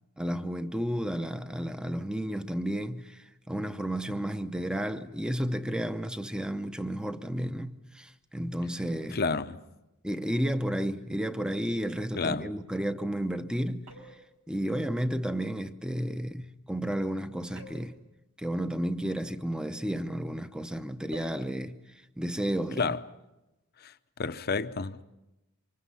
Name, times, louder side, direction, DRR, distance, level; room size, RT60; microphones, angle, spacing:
voice 1, 0.2-9.2 10.0-13.9 14.5-17.9 18.4-21.8 22.2-22.9, equal, 5° right, 0.8 m, -32 dB
voice 2, 9.1-9.6 12.2-12.5 22.8-23.0 23.8-23.9 24.2-25.0, left 4 dB, 45° left, 0.8 m, -30 dB
sound 1, 13.9-14.3 17.6-18.0 21.1-21.5, right 1 dB, 85° right, 6.1 m, -48 dB
28.5 x 25.5 x 5.7 m
head